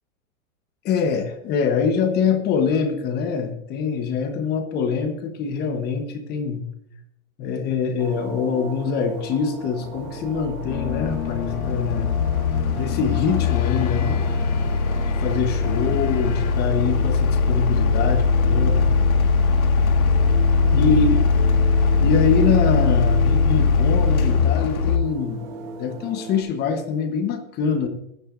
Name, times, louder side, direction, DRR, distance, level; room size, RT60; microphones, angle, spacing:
voice 1, 0.8-6.6 7.4-12.1 12.8-14.2 15.1-18.9 20.7-21.1 22.0-27.9, left 6 dB, 25° left, 7 dB, 1.1 m, -24 dB
sound 1, 8.0-26.4, right 4 dB, 40° right, 3.3 m, -37 dB
sound 2, 9.2-9.3 9.9-25.0, left 4 dB, 85° left, 1.7 m, -20 dB
sound 3, 10.7-16.5, left 10 dB, 60° left, 1.9 m, -31 dB
15.5 x 11.0 x 2.6 m, 0.78 s
hypercardioid pair, 150°, 42 cm